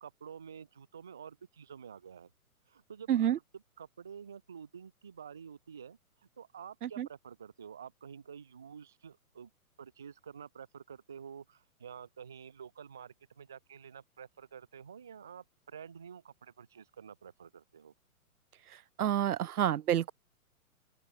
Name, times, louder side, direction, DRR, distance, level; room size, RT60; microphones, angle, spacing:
voice 1, 0.0-2.3 2.7-3.4 3.8-9.5 9.8-17.9, right 7 dB, ahead, 0.4 m, -49 dB
voice 2, 3.1-3.4 6.8-7.1 19.0-20.1, right 11 dB, 80° right, 0.5 m, -28 dB
open air
figure-of-eight pair, 125°, 44 cm